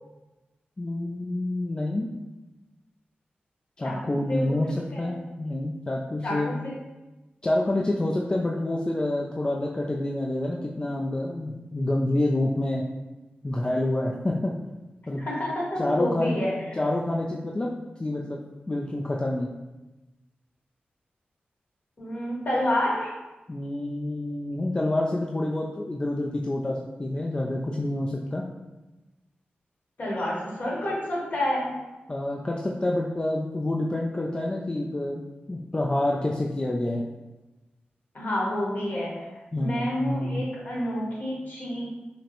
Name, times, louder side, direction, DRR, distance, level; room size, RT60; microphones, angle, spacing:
voice 1, 0.8-2.1 3.8-6.6 7.4-12.8 13.4-14.5 15.1-15.2 15.8-16.4 16.8-17.7 18.0-18.4 18.7-19.5 23.5-28.5 32.1-35.2 35.5-37.0 39.5-40.4, left 1 dB, 25° left, -2 dB, 0.3 m, -27 dB
voice 2, 3.8-4.6 4.9-5.1 6.2-6.8 15.2-16.5 22.0-23.1 30.0-31.7 38.1-39.2 39.5-41.8, left 1 dB, 50° left, -5 dB, 1.4 m, -29 dB
5.5 x 2.0 x 2.9 m, 1.1 s
wide cardioid pair, 95°, 4 cm